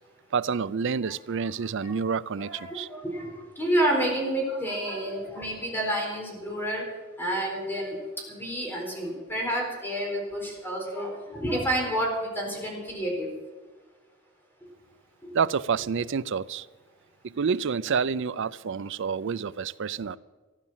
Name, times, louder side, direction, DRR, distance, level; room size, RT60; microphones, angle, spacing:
voice 1, 0.3-2.9 15.3-16.6 17.2-20.2, right 6 dB, 65° right, 0.5 m, -28 dB
voice 2, 1.4-2.0 2.4-6.8 7.2-8.0 8.2-13.3 15.2-15.3, right 1 dB, 10° left, 4.2 m, -29 dB
15.0 x 11.5 x 7.3 m
head